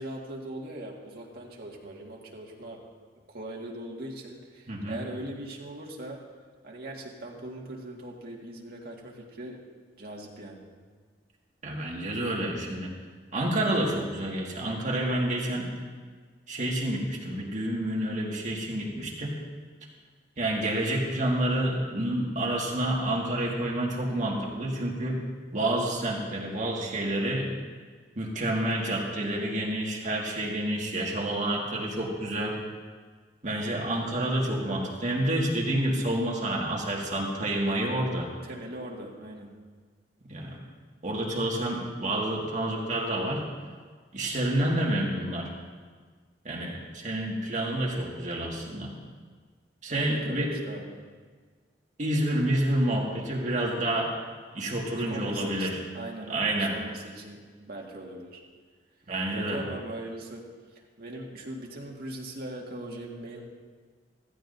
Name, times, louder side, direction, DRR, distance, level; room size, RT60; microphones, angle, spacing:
voice 1, 0.0-2.9 3.3-6.2 6.6-9.6 10.0-10.6 38.4-39.5 49.9-51.0 55.1-55.7 55.9-58.4 59.3-60.5 61.0-63.4, right 1 dB, 60° right, -2 dB, 1.8 m, -40 dB
voice 2, 4.7-5.0 11.6-12.9 13.3-15.7 16.5-19.3 20.4-25.2 25.5-27.5 28.2-32.6 33.4-38.3 40.3-40.6 41.0-43.4 44.1-45.5 46.4-48.9 49.8-50.5 52.0-54.1 54.5-55.8 56.3-56.8 59.1-59.6, right 1 dB, 45° right, -2 dB, 1.8 m, -29 dB
15.5 x 14.0 x 2.7 m, 1.5 s
head